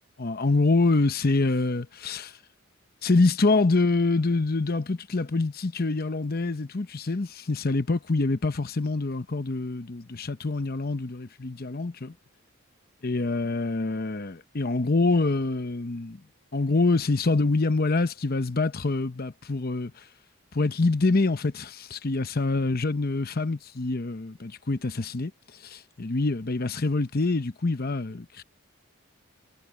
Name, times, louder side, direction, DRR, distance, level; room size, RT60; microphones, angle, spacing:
voice 1, 0.2-2.4 3.0-12.1 13.0-16.2 16.5-20.0 20.5-25.3 25.6-28.4, left 3 dB, 45° left, 0.8 m, -25 dB
head